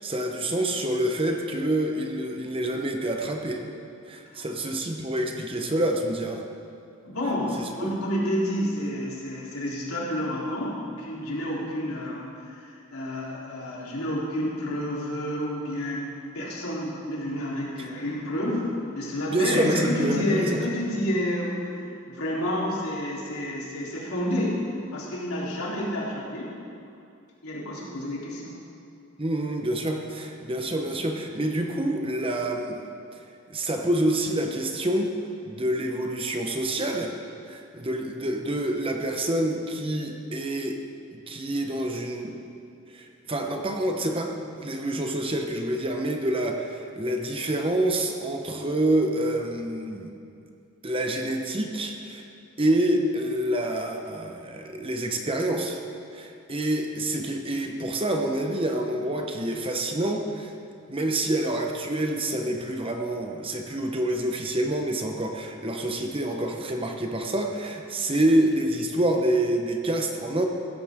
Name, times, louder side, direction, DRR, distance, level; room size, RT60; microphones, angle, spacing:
voice 1, 0.0-3.6 4.1-6.5 7.6-7.9 17.8-17.9 19.3-20.5 29.2-32.8 33.5-35.1 35.4-37.2 37.5-40.8 41.1-42.3 42.9-50.1 50.8-52.3 52.6-55.8 56.1-60.5 60.9-70.5, right 1 dB, 25° right, 3 dB, 1.0 m, -27 dB
voice 2, 7.0-18.7 18.9-21.6 22.1-24.6 24.9-26.6 27.4-28.5, equal, 90° left, -6 dB, 3.7 m, -29 dB
16.0 x 14.0 x 3.7 m, 2.5 s
head